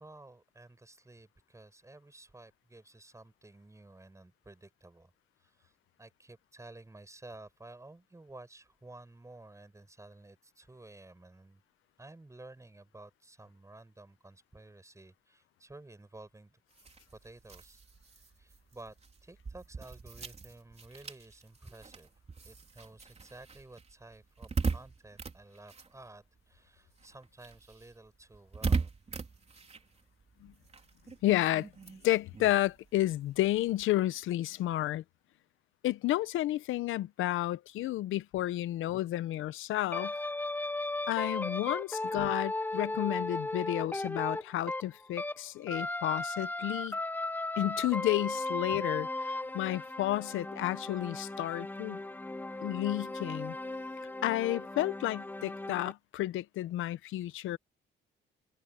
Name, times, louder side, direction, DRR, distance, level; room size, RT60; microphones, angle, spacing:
voice 1, 0.0-5.1 5.4-5.7 6.0-11.6 12.0-16.6 17.1-17.8 18.4-19.0 19.2-22.1 22.5-28.9, right 2 dB, 15° right, 7.9 m, -53 dB
sound 1, 16.7-26.6 26.9-33.8, right 4 dB, 35° right, 3.7 m, -40 dB
voice 2, 31.2-31.7 32.0-35.0 35.8-40.1 41.1-47.0 47.6-52.0 52.6-53.6 54.2-57.6, left 15 dB, 85° left, 0.9 m, -31 dB
sound 2, 39.9-45.4 45.7-55.9, left 2 dB, 10° left, 0.7 m, -36 dB
cardioid pair, 90°, 20 cm